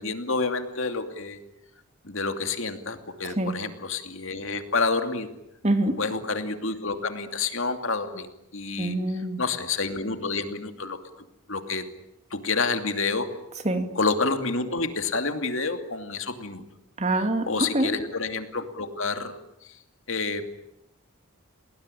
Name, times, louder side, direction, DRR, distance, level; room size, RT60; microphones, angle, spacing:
voice 1, 0.0-1.4 2.0-5.3 6.0-8.3 8.5-9.0 9.4-11.0 11.5-11.8 12.3-13.3 14.0-16.6 17.4-19.3 19.6-19.7 20.1-20.4, left 4 dB, 60° left, 7 dB, 2.7 m, -28 dB
voice 2, 3.2-3.6 5.6-6.0 8.8-9.4 13.6-13.9 17.0-17.9, right 1 dB, 30° right, 7 dB, 2.3 m, -25 dB
29.5 x 20.0 x 9.9 m, 0.85 s
head